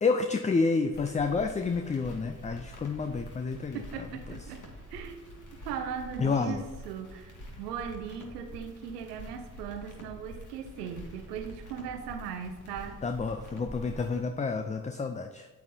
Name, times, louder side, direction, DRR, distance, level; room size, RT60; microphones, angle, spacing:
voice 1, 0.0-4.4 6.2-6.6 13.0-15.5, left 4 dB, 15° left, 7 dB, 0.5 m, -29 dB
sound 1, 0.9-14.2, equal, 40° left, 2.2 m, -46 dB
voice 2, 3.7-4.6 4.9-5.3 5.6-7.3 7.6-13.0, right 7 dB, 85° right, 7 dB, 0.8 m, -38 dB
8.4 x 8.3 x 2.8 m, 1.3 s
hypercardioid pair, 40°, 46 cm